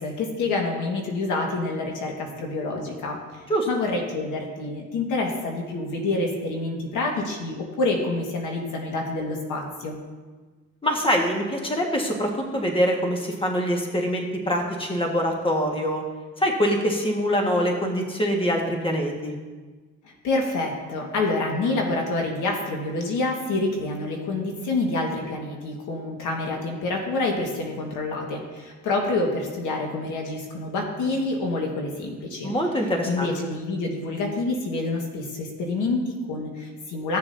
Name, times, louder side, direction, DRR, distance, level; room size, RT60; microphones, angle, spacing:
voice 1, 0.0-3.4 3.7-10.0 20.0-32.5 33.1-37.2, left 2 dB, 85° left, 1 dB, 1.7 m, -27 dB
voice 2, 10.8-16.0 16.4-19.3 32.4-33.3, equal, 15° left, 1 dB, 1.6 m, -24 dB
15.0 x 6.9 x 2.7 m, 1.3 s
cardioid pair, 90°, 30 cm